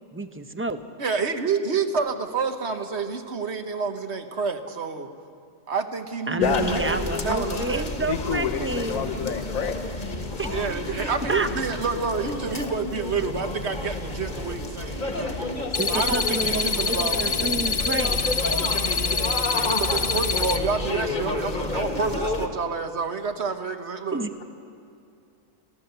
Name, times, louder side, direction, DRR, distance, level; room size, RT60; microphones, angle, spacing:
voice 1, 0.1-0.8 6.3-9.1 10.4-10.6 11.3-11.5 15.8-18.2 24.1-24.3, right 2 dB, 15° right, 9 dB, 0.5 m, -29 dB
voice 2, 1.0-5.1 5.7-7.9 10.5-15.5 15.9-17.2 19.5-24.2, right 5 dB, 55° right, 7 dB, 1.3 m, -28 dB
voice 3, 6.4-7.1 8.1-9.8, left 7 dB, 80° left, 5 dB, 1.4 m, -28 dB
sound 1, 6.4-22.5, left 2 dB, 35° left, 1.5 m, -30 dB
sound 2, 15.7-20.6, left 4 dB, 60° left, 1.3 m, -26 dB
29.0 x 13.0 x 6.8 m, 2.5 s
omnidirectional pair, 1.4 m